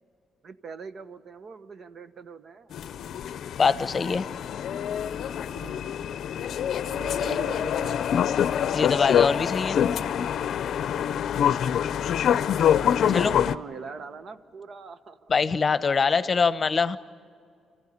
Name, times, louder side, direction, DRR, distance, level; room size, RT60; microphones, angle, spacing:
voice 1, 0.4-2.8 5.5-6.0 6.8-8.1 11.0-11.6 12.9-15.3, right 5 dB, 50° right, 12 dB, 1.1 m, -42 dB
sound 1, 2.7-13.6, left 9 dB, 65° left, 0.6 m, -25 dB
voice 2, 3.6-4.3 8.7-9.8 13.1-13.3 15.3-17.0, left 5 dB, 35° left, 13 dB, 0.9 m, -23 dB
27.0 x 15.0 x 10.0 m, 2.3 s
cardioid pair, 90°, 0 cm